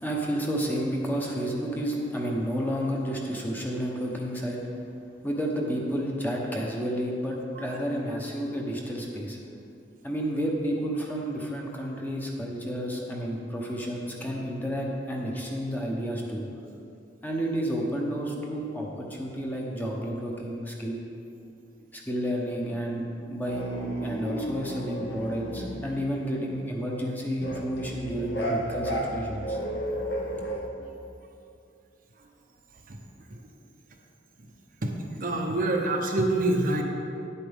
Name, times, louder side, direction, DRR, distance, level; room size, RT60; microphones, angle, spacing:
voice 1, 0.0-4.6 5.2-9.4 10.0-16.4 17.2-21.0 21.9-29.6, equal, 10° left, -2 dB, 1.0 m, -31 dB
sound 1, 23.5-25.9 27.4-30.6, equal, 65° left, 1.4 m, -33 dB
voice 2, 35.2-36.8, right 2 dB, 50° right, 2 dB, 0.8 m, -25 dB
10.0 x 8.3 x 3.6 m, 2.5 s
head